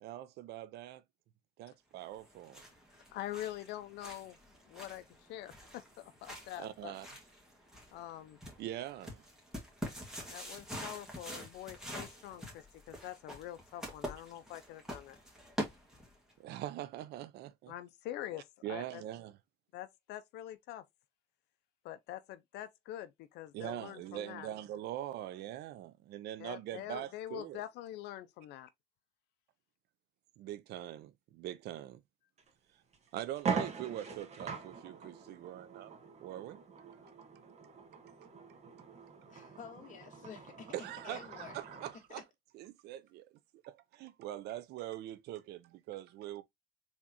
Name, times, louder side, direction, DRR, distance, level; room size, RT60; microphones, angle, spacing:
voice 1, 0.0-1.0 1.6-2.6 6.6-7.1 8.6-9.2 16.4-17.7 18.6-19.4 23.5-27.6 30.4-32.0 33.1-35.9 36.2-36.6 40.7-42.2 42.5-43.3 43.6-46.4, right 13 dB, 80° right, 0.7 m, -43 dB
sound 1, 2.1-16.3, equal, 5° right, 1.9 m, -46 dB
voice 2, 3.1-4.4 4.6-6.9 7.9-8.4 10.3-15.2 17.7-19.0 19.7-20.8 21.8-24.5 26.4-28.7, left 13 dB, 85° left, 0.5 m, -45 dB
sound 2, 32.4-32.5 32.9-33.0 33.3-42.0, right 5 dB, 40° right, 1.7 m, -42 dB
voice 3, 39.3-40.7 41.0-41.6 42.1-42.2, left 7 dB, 50° left, 2.0 m, -50 dB
4.3 x 3.6 x 2.8 m
cardioid pair, 110°, 17 cm